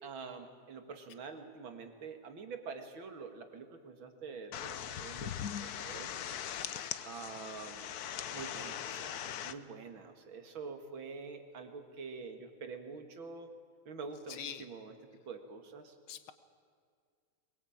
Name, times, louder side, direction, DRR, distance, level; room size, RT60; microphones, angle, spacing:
voice 1, 0.0-5.3 5.6-6.2 7.1-8.0 8.3-13.5 13.9-14.9 15.3-16.0, right 4 dB, 70° right, 6 dB, 2.8 m, -46 dB
sound 1, 4.5-9.5, left 9 dB, 60° left, 1.1 m, -40 dB
voice 2, 6.5-6.9 14.3-14.7 16.1-16.3, left 8 dB, 85° left, 11 dB, 2.1 m, -45 dB
23.0 x 21.0 x 8.8 m, 2.1 s
omnidirectional pair, 2.2 m